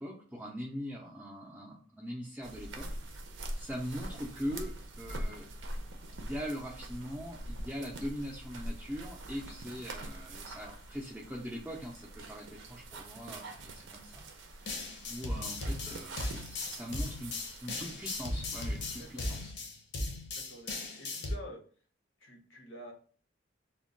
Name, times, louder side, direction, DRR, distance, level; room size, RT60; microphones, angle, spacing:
voice 1, 0.0-2.9 3.6-5.5 6.2-14.2 14.5-14.8 15.1-17.3 17.6-19.5, equal, 5° right, -4 dB, 0.4 m, -41 dB
sound 1, 2.4-19.5, right 1 dB, 70° right, 0.5 m, -44 dB
sound 2, 14.7-21.4, left 2 dB, 60° left, 0.6 m, -37 dB
voice 2, 20.3-21.6 22.2-22.9, equal, 90° left, 2 dB, 0.8 m, -48 dB
2.2 x 2.1 x 3.7 m, 0.43 s
head